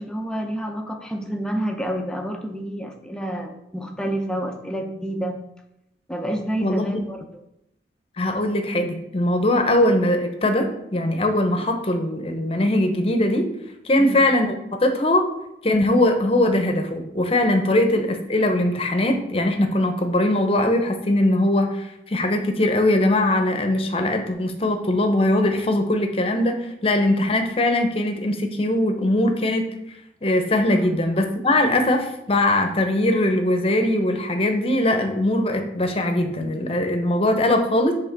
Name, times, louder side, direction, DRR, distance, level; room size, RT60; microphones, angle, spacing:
voice 1, 0.0-5.4 6.1-7.2 14.0-14.2 30.7-31.1, right 1 dB, 5° left, 4 dB, 0.6 m, -29 dB
voice 2, 6.6-7.0 8.2-13.5 13.8-15.3 15.6-26.6 26.8-29.7 30.2-37.9, left 1 dB, 35° left, 5 dB, 0.8 m, -21 dB
8.0 x 3.5 x 4.6 m, 0.85 s
head